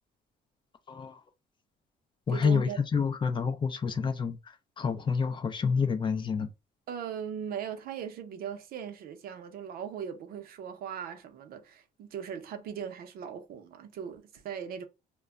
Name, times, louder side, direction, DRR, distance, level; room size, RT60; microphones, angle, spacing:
voice 1, 0.9-1.2 2.3-6.5, left 5 dB, 30° left, 0.4 m, -28 dB
voice 2, 2.3-2.8 6.9-14.8, right 8 dB, 65° right, 0.6 m, -39 dB
2.2 x 2.1 x 3.6 m
cardioid pair, 110°, 17 cm